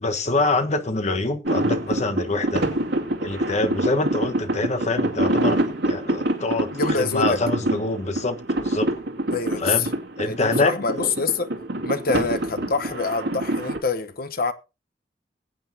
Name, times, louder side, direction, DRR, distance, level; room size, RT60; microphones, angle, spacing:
voice 1, 0.0-2.7 3.2-8.9 9.6-9.9 10.2-11.1, left 2 dB, 40° left, 1.3 m, -25 dB
sound 1, 1.4-13.8, right 1 dB, 85° right, 2.3 m, -26 dB
voice 2, 6.7-7.4 9.3-9.9 10.2-11.5 11.8-14.5, left 4 dB, 55° left, 1.0 m, -25 dB
21.0 x 8.8 x 2.8 m
head